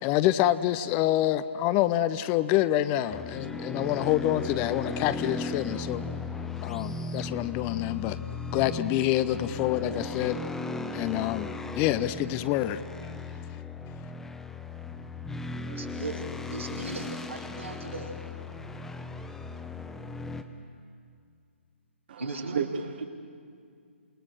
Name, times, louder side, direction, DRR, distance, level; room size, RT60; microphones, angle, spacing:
voice 1, 0.0-6.0 6.6-8.2 8.5-10.4 10.9-12.8, left 13 dB, 25° left, 14 dB, 0.6 m, -27 dB
sound 1, 3.1-20.4, left 3 dB, 5° left, 0.9 m, -37 dB
voice 2, 15.6-18.1 22.2-22.5, right 3 dB, 85° right, 0 dB, 3.4 m, -38 dB
voice 3, 22.1-23.0, right 6 dB, 50° right, 6 dB, 1.3 m, -33 dB
28.0 x 19.5 x 6.4 m, 2.2 s
figure-of-eight pair, 130°, 7 cm